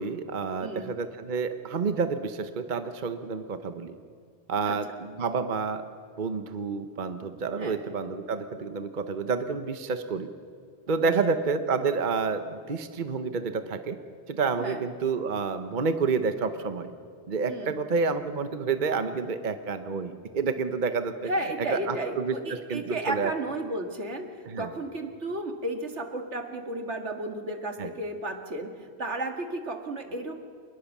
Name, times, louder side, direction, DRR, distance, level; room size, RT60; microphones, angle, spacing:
voice 1, 0.0-3.9 4.5-5.8 6.2-10.3 10.9-14.0 14.3-16.9 17.3-21.3 21.6-23.3 24.5-24.7 27.8-27.9, right 5 dB, 45° right, 9 dB, 1.1 m, -29 dB
voice 2, 0.6-0.9 4.6-4.8 7.6-7.8 11.0-11.1 14.6-14.8 17.5-17.8 21.3-24.3 24.6-30.4, right 1 dB, 80° right, 5 dB, 2.3 m, -33 dB
25.5 x 20.5 x 7.3 m, 2.2 s
omnidirectional pair, 1.2 m